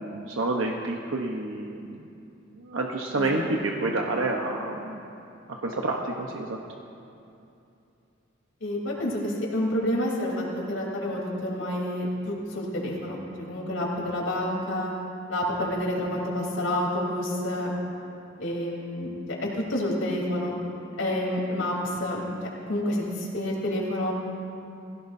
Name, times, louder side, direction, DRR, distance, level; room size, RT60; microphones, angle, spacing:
voice 1, 0.0-2.0 2.6-5.0 5.5-6.6, right 2 dB, 80° right, 0 dB, 1.0 m, -29 dB
voice 2, 8.6-14.9 15.3-17.7 18.4-20.5 21.0-22.2 22.7-24.1, left 1 dB, 90° left, -3 dB, 3.6 m, -29 dB
21.5 x 16.5 x 2.7 m, 2.7 s
head